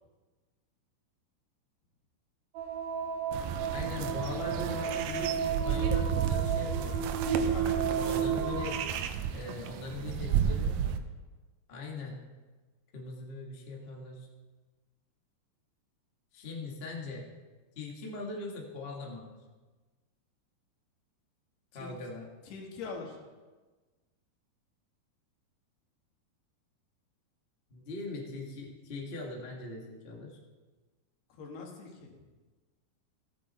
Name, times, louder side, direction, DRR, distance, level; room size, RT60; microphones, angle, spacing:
sound 1, 2.5-8.8, right 7 dB, 60° right, 2.9 m, -33 dB
sound 2, 3.3-11.0, right 8 dB, 80° right, 2.1 m, -32 dB
voice 1, 3.7-7.0 7.8-8.8 9.3-10.8 11.7-12.2 12.9-14.3 16.3-17.3 17.7-19.4 21.7-22.3 27.7-30.4, left 3 dB, 50° left, -2 dB, 0.7 m, -41 dB
voice 2, 7.3-8.2 8.5-8.6 21.7-22.0 22.4-23.2 31.3-32.2, left 4 dB, 75° left, 1 dB, 3.6 m, -43 dB
15.5 x 8.6 x 4.3 m, 1.3 s
omnidirectional pair, 4.7 m